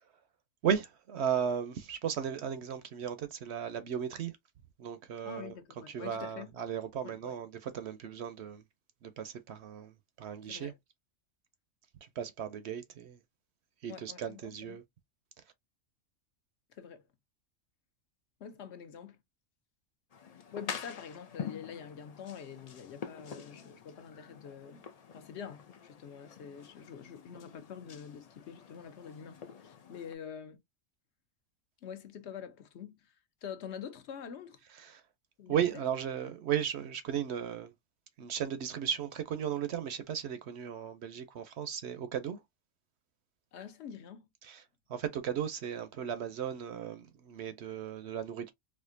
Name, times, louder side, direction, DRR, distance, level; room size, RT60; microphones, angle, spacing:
voice 1, 0.6-4.3 4.8-5.6 5.9-8.6 9.0-10.7 12.0-13.2 13.8-14.8 34.8-35.0 35.5-37.7 38.2-42.4 44.4-44.6 44.9-48.5, right 8 dB, 65° right, 0.7 m, -35 dB
voice 2, 5.2-6.5 7.0-7.4 10.5-10.8 13.9-14.8 16.7-17.1 18.4-19.2 20.5-24.9 25.1-30.6 31.8-33.1 33.4-34.6 35.4-35.7 43.5-44.3, left 7 dB, 60° left, 0.8 m, -46 dB
sound 1, 20.1-30.1, left 7 dB, 85° left, 0.3 m, -47 dB
4.2 x 2.4 x 2.5 m
omnidirectional pair, 1.4 m